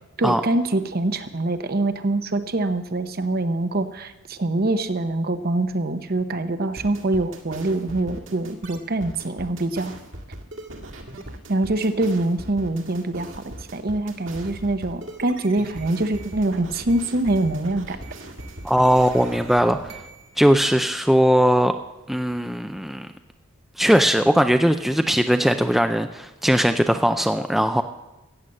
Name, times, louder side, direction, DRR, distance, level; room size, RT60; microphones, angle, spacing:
voice 1, 0.2-9.9 11.5-18.0, right 2 dB, 45° right, 10 dB, 0.8 m, -24 dB
sound 1, 6.8-20.3, right 1 dB, 65° right, 2.0 m, -39 dB
voice 2, 18.6-20.0 20.4-21.7 22.1-23.1 23.8-27.8, equal, ahead, 7 dB, 0.4 m, -19 dB
15.0 x 8.3 x 7.5 m, 1.0 s
head